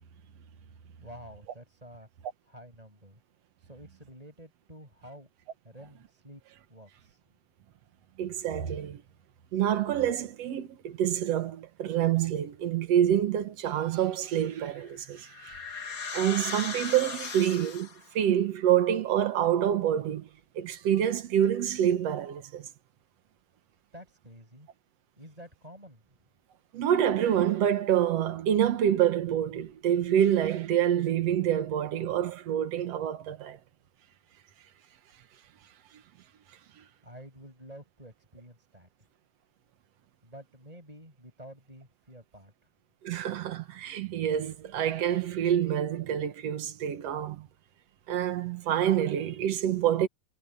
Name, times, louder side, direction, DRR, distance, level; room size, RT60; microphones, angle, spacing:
voice 1, 1.0-2.1 2.4-3.2 3.6-5.3 5.6-6.4 6.7-7.2 23.9-24.7 25.2-26.0 37.0-39.1 40.2-42.5, equal, 10° right, 7.6 m, -49 dB
voice 2, 8.2-9.0 9.5-17.9 18.2-20.3 20.6-22.7 26.7-33.6 43.0-47.5 48.1-50.1, right 10 dB, 65° right, 2.2 m, -27 dB
sound 1, 14.7-18.1, left 5 dB, 35° left, 1.7 m, -38 dB
omnidirectional pair, 3.3 m